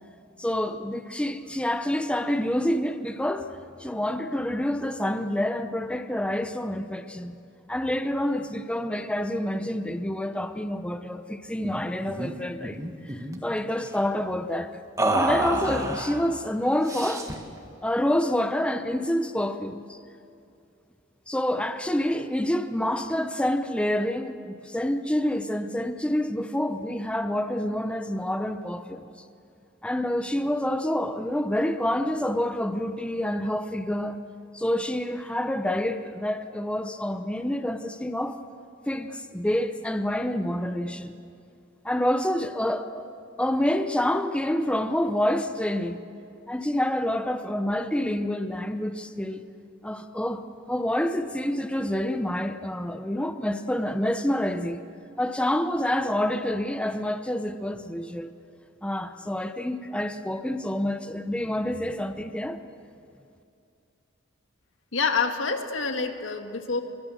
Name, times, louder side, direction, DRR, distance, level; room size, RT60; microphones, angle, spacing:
voice 1, 0.4-3.5 3.8-7.4 7.7-12.8 13.0-14.7 15.1-17.3 17.8-20.0 21.3-29.0 29.8-34.2 34.5-38.4 38.9-41.2 41.8-43.1 43.4-46.0 46.5-49.4 49.8-54.8 55.2-58.3 58.8-62.6, left 1 dB, 5° left, 0.8 m, -27 dB
sound 1, 11.6-11.8 12.1-12.3 12.6-13.4 15.0-16.2 16.9-17.5, right 1 dB, 15° right, 1.8 m, -27 dB
voice 2, 64.9-66.8, left 5 dB, 90° left, 1.8 m, -27 dB
24.5 x 22.0 x 7.7 m
head